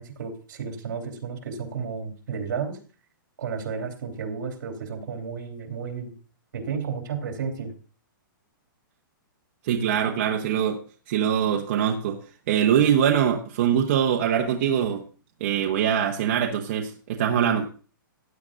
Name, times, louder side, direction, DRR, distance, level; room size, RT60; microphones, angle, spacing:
voice 1, 0.0-2.8 3.4-6.1 6.5-7.7, right 6 dB, 60° right, 4 dB, 2.9 m, -32 dB
voice 2, 9.6-10.8 11.1-12.2 12.5-15.0 15.4-17.6, right 9 dB, 35° right, 1 dB, 0.9 m, -23 dB
15.5 x 9.8 x 2.5 m, 0.38 s
hypercardioid pair, 175°, 11 cm